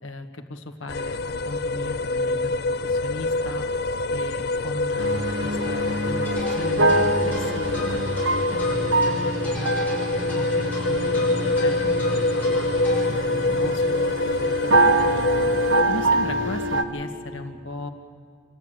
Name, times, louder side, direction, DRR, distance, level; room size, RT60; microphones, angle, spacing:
voice 1, 0.0-3.7 4.1-8.0 8.5-12.7 13.1-15.5 15.9-17.9, left 2 dB, 80° left, 5 dB, 1.7 m, -36 dB
sound 1, 0.9-15.8, left 2 dB, 55° left, 0.5 m, -25 dB
sound 2, 5.0-16.8, right 2 dB, 75° right, 1.1 m, -25 dB
sound 3, 6.2-13.0, left 1 dB, 10° left, 6.6 m, -37 dB
27.5 x 12.0 x 9.0 m, 2.3 s
head